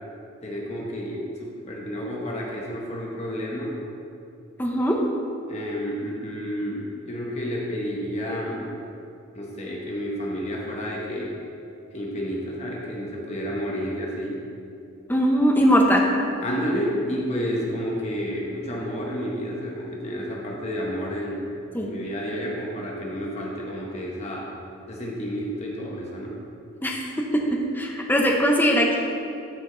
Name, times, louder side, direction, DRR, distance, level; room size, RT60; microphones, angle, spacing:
voice 1, 0.4-3.8 5.5-8.8 9.3-11.4 11.9-14.4 16.4-21.5 21.8-24.5 24.9-26.4, equal, 30° left, -3 dB, 1.1 m, -30 dB
voice 2, 4.6-5.0 15.1-16.0 21.7-21.9 26.8-27.0 27.7-29.0, equal, 10° left, -1 dB, 0.8 m, -20 dB
13.0 x 5.2 x 3.9 m, 2.6 s
head